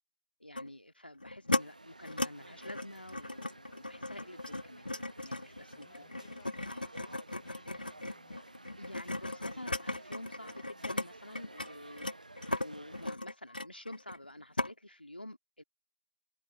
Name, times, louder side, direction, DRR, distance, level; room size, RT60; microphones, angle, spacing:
voice 1, 0.4-4.9 5.2-6.1 8.8-12.1 12.6-15.6, left 1 dB, 85° left, 2.2 m, -49 dB
sound 1, 0.6-0.7 1.2-1.6 2.0-2.3 2.6-11.1 11.3-14.3 14.6-14.7, left 2 dB, 60° left, 1.3 m, -37 dB
sound 2, 1.6-13.1, right 2 dB, 50° right, 1.1 m, -54 dB
voice 2, 5.7-6.9 7.4-8.4, left 21 dB, 5° left, 4.0 m, -66 dB
figure-of-eight pair, 170°, 5 cm